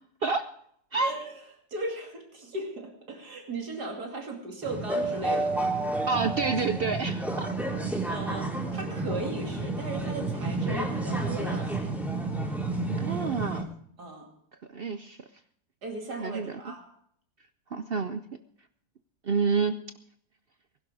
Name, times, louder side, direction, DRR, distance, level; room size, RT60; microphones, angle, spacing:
voice 1, 1.0-1.3 1.7-5.7 8.1-11.9 14.0-14.3 15.8-16.9, right 2 dB, 80° right, 2 dB, 3.2 m, -37 dB
sound 1, 4.6-13.6, right 2 dB, ahead, 3.4 m, -30 dB
voice 2, 6.1-7.5 12.9-13.7 14.7-15.2 16.2-16.7 17.7-18.2 19.2-19.8, right 4 dB, 60° right, 10 dB, 0.6 m, -28 dB
20.0 x 11.5 x 4.8 m, 0.67 s
omnidirectional pair, 1.7 m